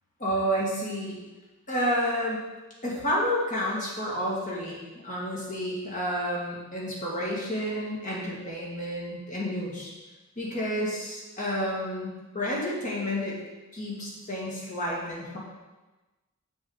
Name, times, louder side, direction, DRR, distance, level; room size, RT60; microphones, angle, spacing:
voice 1, 0.2-1.2 1.7-2.4 2.8-9.9 10.4-13.4 13.7-15.4, equal, 40° left, -5 dB, 2.1 m, -30 dB
7.0 x 6.7 x 3.9 m, 1.1 s
head